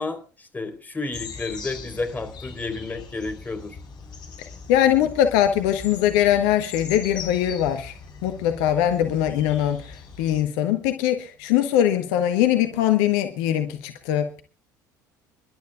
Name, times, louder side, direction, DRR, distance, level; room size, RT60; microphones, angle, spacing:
voice 1, 0.0-3.8, left 3 dB, 15° left, 5 dB, 3.9 m, -31 dB
sound 1, 1.1-10.4, left 5 dB, 45° left, 4.3 m, -40 dB
voice 2, 4.7-7.9 8.2-14.4, left 11 dB, 65° left, 7 dB, 1.1 m, -22 dB
29.5 x 11.5 x 2.4 m, 0.35 s
figure-of-eight pair, 65°, 10 cm